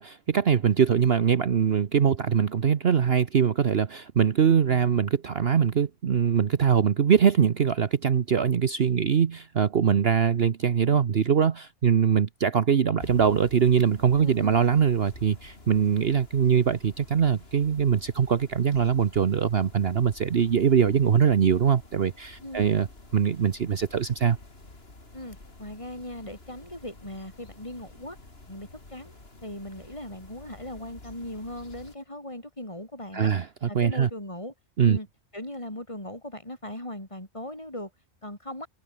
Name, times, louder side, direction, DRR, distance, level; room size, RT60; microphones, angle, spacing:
voice 1, 0.0-22.9 23.1-24.4 33.1-34.1 34.8-35.0, right 7 dB, 50° right, 1.1 m, -22 dB
sound 1, 13.0-32.0, left 2 dB, 50° left, 4.0 m, -49 dB
voice 2, 14.2-14.6 22.4-22.7 25.1-28.2 28.5-29.1 29.4-33.3 33.7-34.5 34.9-35.1 35.3-37.9 38.2-38.7, left 1 dB, 25° left, 5.3 m, -39 dB
open air
omnidirectional pair, 1.4 m